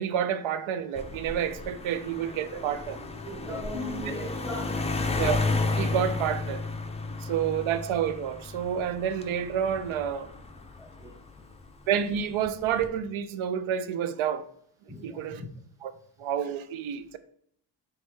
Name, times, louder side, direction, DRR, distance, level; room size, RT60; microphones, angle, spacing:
voice 1, 0.0-3.0 5.2-5.4 5.8-6.6 7.2-10.3 11.9-14.4 15.0-15.4 16.2-17.2, right 9 dB, 75° right, 0.6 m, -29 dB
sound 1, 1.0-11.7 12.5-12.9, left 3 dB, 15° left, 0.4 m, -33 dB
voice 2, 2.9-5.2 10.8-11.6 14.9-15.5, left 1 dB, 5° right, 0.9 m, -39 dB
4.7 x 3.2 x 3.4 m
cardioid pair, 90°, 48 cm